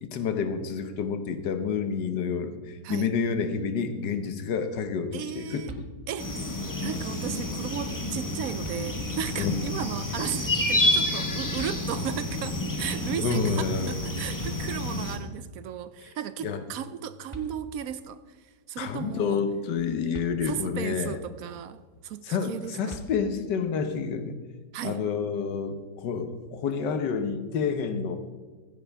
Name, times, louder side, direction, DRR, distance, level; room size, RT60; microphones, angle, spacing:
voice 1, 0.0-5.6 9.4-9.6 13.2-13.9 16.4-16.6 18.8-21.2 22.2-24.4 24.8-28.2, left 6 dB, 85° left, 8 dB, 1.5 m, -29 dB
voice 2, 5.1-5.7 6.1-6.4 6.8-18.2 18.7-19.4 20.4-23.0 24.7-25.0, right 9 dB, 70° right, 13 dB, 0.9 m, -35 dB
sound 1, 5.6-6.4 7.9-8.0 8.6-9.4 11.6-12.3 14.1-14.2 14.4-15.2 16.9-17.0 17.3-18.1 20.1-20.9 22.9-23.7, right 1 dB, 20° right, 0.9 m, -44 dB
sound 2, 6.2-15.2, left 1 dB, 15° left, 0.9 m, -29 dB
15.5 x 9.3 x 3.4 m, 1.4 s
omnidirectional pair, 1.8 m